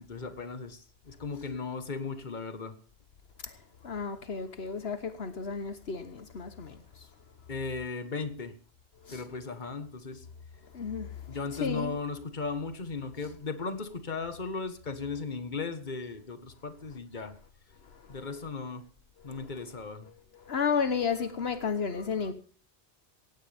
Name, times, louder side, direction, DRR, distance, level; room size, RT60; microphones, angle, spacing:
voice 1, 0.0-2.7 7.5-8.6 9.1-10.3 11.3-17.3 18.1-18.9 19.2-20.1, left 4 dB, 45° left, 1.6 m, -36 dB
voice 2, 3.4-7.1 9.0-9.3 10.6-12.0 17.8-18.2 19.2-19.5 20.1-22.3, left 6 dB, 70° left, 1.4 m, -33 dB
18.0 x 16.0 x 3.5 m
omnidirectional pair, 1.1 m